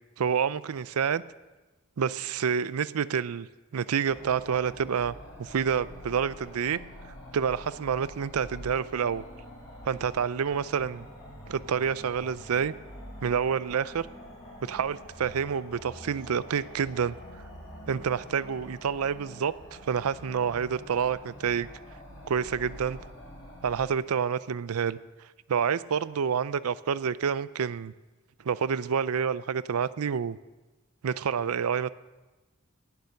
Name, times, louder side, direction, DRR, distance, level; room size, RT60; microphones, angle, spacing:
voice 1, 0.2-1.2 2.0-3.5 3.7-6.8 7.3-9.2 9.9-11.0 11.5-12.7 13.2-14.1 14.6-17.1 17.9-21.7 22.3-23.0 23.6-25.0 25.5-27.9 28.4-30.4 31.0-31.9, right 7 dB, 90° right, 17 dB, 0.5 m, -28 dB
sound 1, 4.1-23.9, left 1 dB, 15° left, 4.9 m, -46 dB
18.5 x 7.0 x 6.5 m, 1.2 s
head